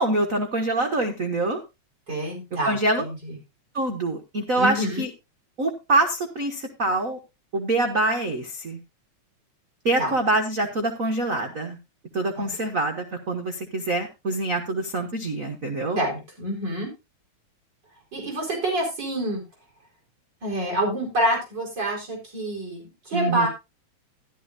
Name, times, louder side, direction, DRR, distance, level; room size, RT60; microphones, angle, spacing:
voice 1, 0.0-1.6 2.6-3.0 3.7-5.1 5.6-7.2 7.5-8.8 9.8-11.8 12.1-16.0 23.1-23.5, right 2 dB, 65° right, 3 dB, 0.8 m, -25 dB
voice 2, 2.1-3.4 4.5-5.0 10.0-10.1 12.4-12.5 15.9-16.9 18.1-19.4 20.4-23.5, right 1 dB, 35° right, -1 dB, 5.0 m, -27 dB
13.0 x 12.0 x 2.6 m, 0.24 s
omnidirectional pair, 3.5 m